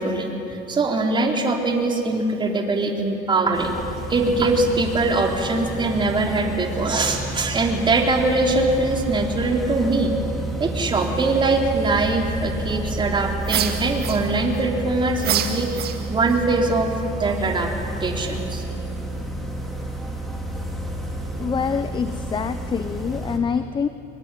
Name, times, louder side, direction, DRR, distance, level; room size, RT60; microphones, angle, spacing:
voice 1, 0.0-3.8 4.1-10.1 10.6-16.9 17.2-17.7 18.0-18.6, right 3 dB, 25° right, 2 dB, 3.7 m, -22 dB
sound 1, 3.5-23.4, right 1 dB, ahead, 4.1 m, -30 dB
sound 2, 13.4-14.6 15.2-16.4, right 10 dB, 50° right, 2.0 m, -27 dB
voice 2, 21.4-23.9, left 6 dB, 25° left, 11 dB, 0.8 m, -25 dB
24.5 x 23.0 x 10.0 m, 2.8 s
cardioid pair, 140°, 21 cm